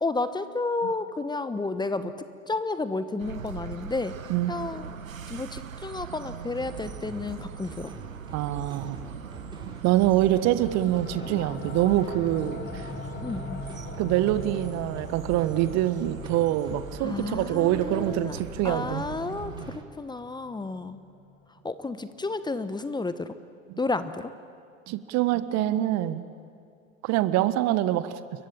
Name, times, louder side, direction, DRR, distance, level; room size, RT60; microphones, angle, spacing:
voice 1, 0.0-2.1 2.5-4.2 4.5-4.9 5.3-7.9 13.2-13.6 17.0-18.4 18.6-21.0 21.6-23.3 23.8-24.3, left 3 dB, 10° left, 12 dB, 1.2 m, -31 dB
sound 1, 3.2-19.8, right 7 dB, 85° right, 0.9 m, -41 dB
sound 2, 6.6-19.8, right 2 dB, 10° right, 4.1 m, -44 dB
voice 2, 8.3-9.0 9.8-12.9 14.0-19.1 23.7-23.8 24.9-26.2 27.0-28.2, right 14 dB, 45° right, 14 dB, 1.2 m, -25 dB
sound 3, 10.5-21.9, left 5 dB, 30° left, 2.7 m, -43 dB
29.5 x 23.0 x 8.8 m, 2.3 s
figure-of-eight pair, 80°, 39 cm